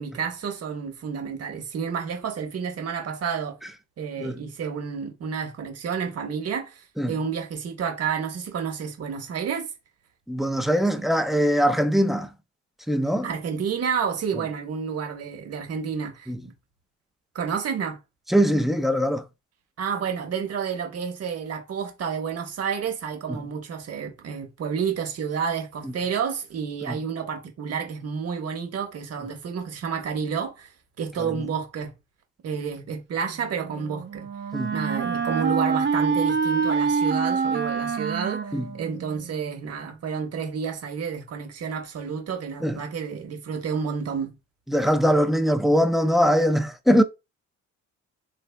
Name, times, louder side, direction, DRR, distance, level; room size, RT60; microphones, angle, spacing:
voice 1, 0.0-3.6 4.0-9.7 13.2-16.5 17.3-18.0 19.8-30.7 31.0-31.9 32.4-34.3 34.7-44.3, right 6 dB, 55° right, 1.1 m, -30 dB
voice 2, 10.3-12.3 12.9-13.3 16.3-16.4 18.3-19.2 23.3-23.4 25.8-25.9 26.8-27.0 34.5-34.7 38.5-38.7 42.6-42.8 44.7-47.0, equal, ahead, 0.4 m, -22 dB
Wind instrument woodwind instrument, 33.6-39.4, right 5 dB, 40° right, 0.7 m, -26 dB
3.5 x 3.3 x 2.2 m
cardioid pair, 90°, 30 cm